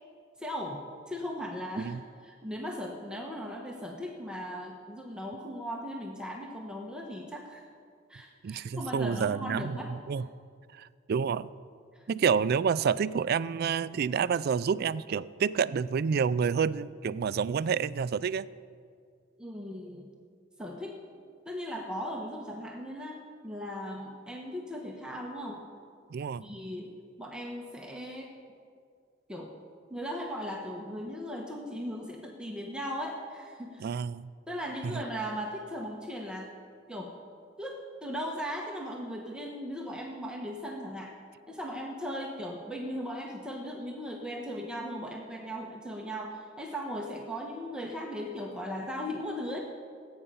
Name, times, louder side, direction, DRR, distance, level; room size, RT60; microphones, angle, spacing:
voice 1, 0.4-7.7 8.1-9.9 11.9-12.0 19.4-20.1 20.6-21.0 21.4-25.6 26.4-26.9 27.2-28.3 29.3-29.5 29.9-33.9 34.5-36.5 36.9-37.2 37.6-41.2 41.5-49.6, equal, 5° right, 0 dB, 1.1 m, -38 dB
voice 2, 8.4-9.8 10.1-10.3 10.7-11.5 12.1-18.5 26.1-26.4 33.8-34.3 34.8-35.0, right 6 dB, 55° right, 18 dB, 0.3 m, -29 dB
19.0 x 8.8 x 5.6 m, 2.2 s
head